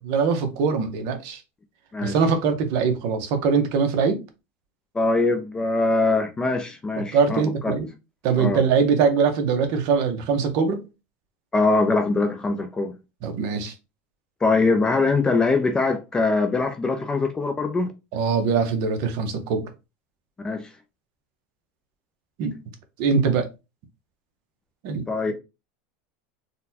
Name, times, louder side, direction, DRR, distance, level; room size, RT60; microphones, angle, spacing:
voice 1, 0.0-1.4 2.0-4.2 7.1-7.9 8.2-10.8 13.2-13.7 18.1-19.7 22.4-22.5 23.0-23.5 24.8-25.0, right 5 dB, 50° right, 0.7 m, -22 dB
voice 2, 4.9-7.8 8.4-8.6 11.5-13.0 14.4-17.9 20.4-20.7 25.1-25.3, left 3 dB, 10° left, 0.3 m, -22 dB
4.0 x 2.2 x 2.7 m
supercardioid pair, 155°, 7 cm